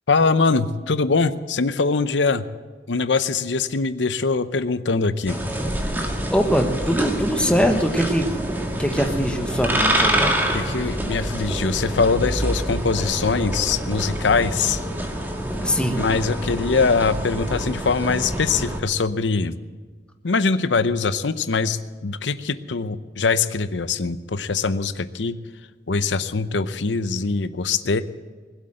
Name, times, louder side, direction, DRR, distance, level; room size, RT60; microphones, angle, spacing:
voice 1, 0.1-2.4 2.9-5.4 10.5-14.8 16.0-19.6 20.2-25.4 25.9-28.0, left 4 dB, 85° left, 13 dB, 0.7 m, -22 dB
sound 1, 5.3-18.8, right 1 dB, 10° right, 1.7 m, -26 dB
voice 2, 6.3-8.3 8.8-10.4 15.6-16.0, equal, 5° left, 4 dB, 1.2 m, -22 dB
20.5 x 8.2 x 7.8 m, 1.4 s
head